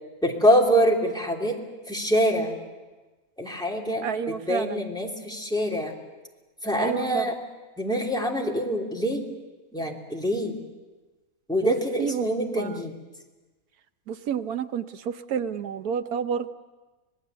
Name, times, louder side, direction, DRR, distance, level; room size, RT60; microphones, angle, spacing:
voice 1, 0.2-1.6 1.9-2.6 3.4-6.0 6.6-7.3 7.8-9.2 9.7-10.6 11.5-12.9, equal, 5° left, -1 dB, 3.0 m, -25 dB
voice 2, 4.0-4.8 6.8-7.3 11.6-12.2 12.5-12.8 14.1-16.5, right 7 dB, 85° right, 10 dB, 1.5 m, -29 dB
26.5 x 19.5 x 8.1 m, 1.2 s
omnidirectional pair, 1.5 m